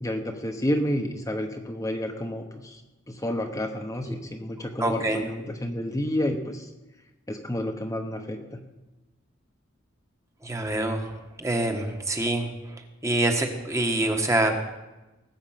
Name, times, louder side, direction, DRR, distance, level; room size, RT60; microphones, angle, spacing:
voice 1, 0.0-2.8 3.1-6.7 7.3-8.6, left 1 dB, 15° left, 3 dB, 1.0 m, -30 dB
voice 2, 4.8-5.2 10.4-11.1 11.4-12.5 13.0-14.6, right 1 dB, 15° right, 4 dB, 1.3 m, -25 dB
19.5 x 8.1 x 5.8 m, 1.1 s
head